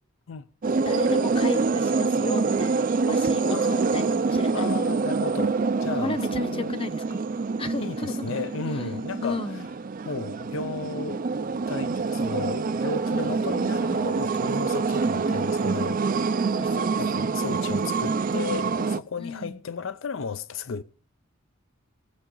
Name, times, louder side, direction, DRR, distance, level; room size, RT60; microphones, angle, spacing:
sound 1, 0.6-19.0, right 4 dB, 40° right, 0.4 m, -26 dB
voice 1, 0.8-4.0 4.3-4.5 6.0-7.2 7.6-8.2 9.2-9.7 13.1-13.5 15.1-15.4 16.4-17.0 19.2-19.6, left 2 dB, 25° left, 0.8 m, -34 dB
voice 2, 3.5-4.2 4.5-6.7 7.8-9.4 10.0-16.4 17.0-20.8, left 5 dB, 70° left, 0.5 m, -34 dB
20.0 x 7.1 x 3.9 m
head